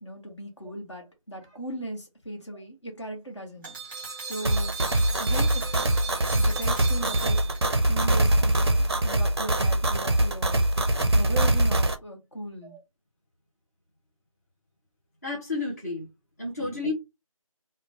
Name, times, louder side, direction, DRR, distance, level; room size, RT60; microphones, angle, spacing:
voice 1, 0.0-3.7 4.2-4.7 5.2-5.8 6.4-7.5 7.8-8.8 9.0-10.7 11.1-12.8 16.6-16.8, right 1 dB, 55° left, 1.1 m, -38 dB
sound 1, 3.6-7.9, right 4 dB, 5° right, 1.0 m, -37 dB
sound 2, 4.4-11.9, right 1 dB, 45° right, 0.4 m, -23 dB
voice 2, 15.2-16.1 16.4-16.9, left 3 dB, 30° left, 0.7 m, -31 dB
2.9 x 2.1 x 2.7 m
figure-of-eight pair, 170°, 18 cm